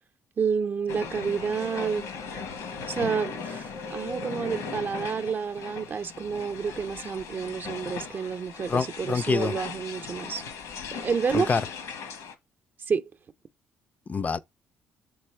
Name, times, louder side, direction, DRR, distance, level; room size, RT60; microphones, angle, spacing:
voice 1, 0.4-2.1 2.9-10.4 10.9-11.5 12.9-13.0, right 6 dB, 40° right, 0.6 m, -29 dB
sound 1, 0.9-12.3, left 5 dB, 80° left, 1.1 m, -38 dB
voice 2, 8.7-9.5 11.3-11.6 14.1-14.4, left 4 dB, 30° left, 0.4 m, -26 dB
6.2 x 3.5 x 4.4 m
cardioid pair, 85°, 5 cm